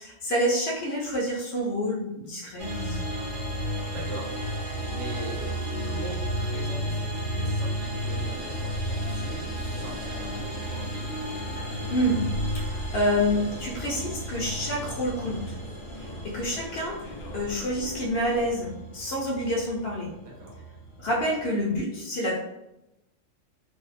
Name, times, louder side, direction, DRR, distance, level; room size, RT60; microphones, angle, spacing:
voice 1, 0.0-3.2 11.9-12.2 12.5-15.6 16.0-17.0 17.3-20.1 21.0-22.4, equal, 65° left, -3 dB, 0.7 m, -28 dB
sound 1, 2.6-21.7, equal, 30° right, 0.8 m, -33 dB
voice 2, 3.7-4.5 4.9-10.9 20.2-20.6, right 2 dB, 75° right, -1 dB, 1.0 m, -41 dB
sound 2, 7.5-18.5, left 1 dB, 85° left, 1.0 m, -41 dB
2.6 x 2.0 x 2.4 m, 0.91 s
omnidirectional pair, 1.3 m